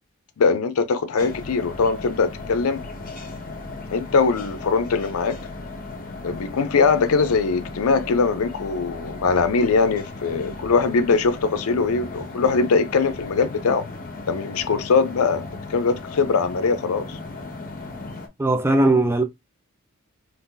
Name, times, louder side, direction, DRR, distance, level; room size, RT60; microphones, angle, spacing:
voice 1, 0.4-2.8 3.9-5.4 6.2-13.8 14.3-17.2, left 4 dB, 90° left, 0.5 m, -21 dB
sound 1, 1.2-18.3, left 3 dB, 40° left, 0.7 m, -36 dB
voice 2, 18.4-19.2, right 2 dB, 10° right, 0.4 m, -18 dB
2.6 x 2.5 x 3.7 m
head